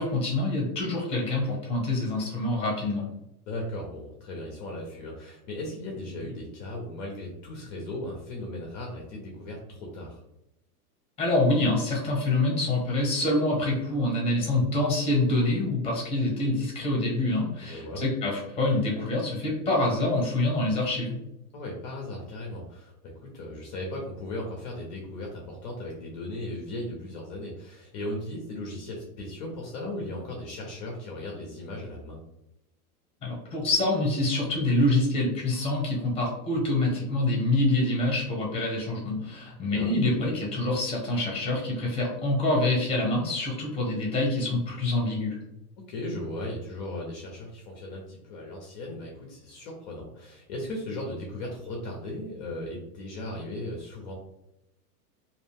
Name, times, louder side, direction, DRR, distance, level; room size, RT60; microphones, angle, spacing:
voice 1, 0.0-3.0 11.2-21.2 33.2-45.4, left 2 dB, 15° left, -2 dB, 0.8 m, -26 dB
voice 2, 3.5-10.2 17.6-18.0 21.5-22.9 23.2-32.2 39.7-39.9 45.9-54.1, left 1 dB, 30° left, -1 dB, 0.5 m, -37 dB
2.5 x 2.1 x 3.3 m, 0.85 s
supercardioid pair, 145°, 46 cm